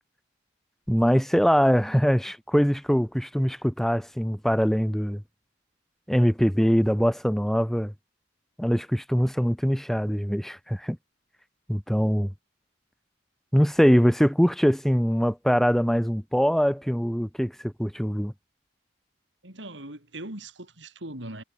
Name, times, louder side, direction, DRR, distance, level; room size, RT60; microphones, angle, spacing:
voice 1, 0.9-5.2 6.1-7.9 8.6-11.0 11.7-12.3 13.5-18.3, equal, ahead, 2.4 m, -23 dB
voice 2, 19.4-21.4, right 1 dB, 70° right, 6.9 m, -40 dB
head